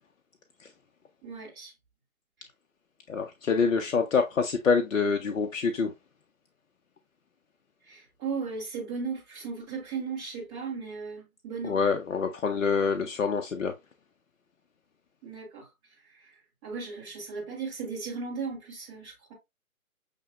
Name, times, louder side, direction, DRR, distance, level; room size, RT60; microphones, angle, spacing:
voice 1, 1.2-1.7 7.9-11.8 15.2-15.7 16.1-16.3 16.6-19.3, right 5 dB, 10° right, 1.0 m, -36 dB
voice 2, 3.1-5.9 11.6-13.7, left 5 dB, 65° left, 0.7 m, -26 dB
6.4 x 2.9 x 2.4 m
figure-of-eight pair, 150°, 42 cm